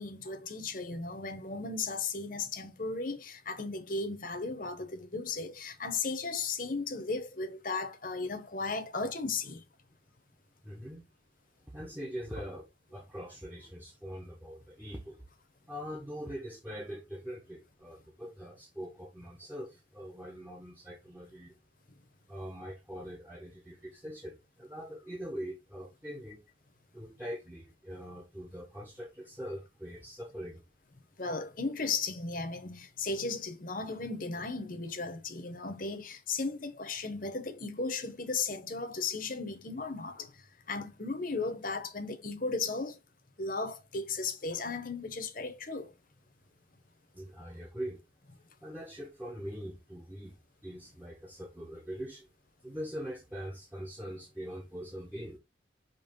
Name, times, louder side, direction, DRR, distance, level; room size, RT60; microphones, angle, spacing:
voice 1, 0.0-9.6 31.2-40.3 40.7-43.0 43.4-45.9, left 4 dB, 45° left, 1.1 m, -35 dB
voice 2, 10.6-11.1 11.7-15.2 15.7-21.6 22.3-26.4 26.9-30.6 47.1-48.1 48.6-52.3 52.6-55.4, equal, 10° right, 1.1 m, -42 dB
5.4 x 3.3 x 5.3 m
head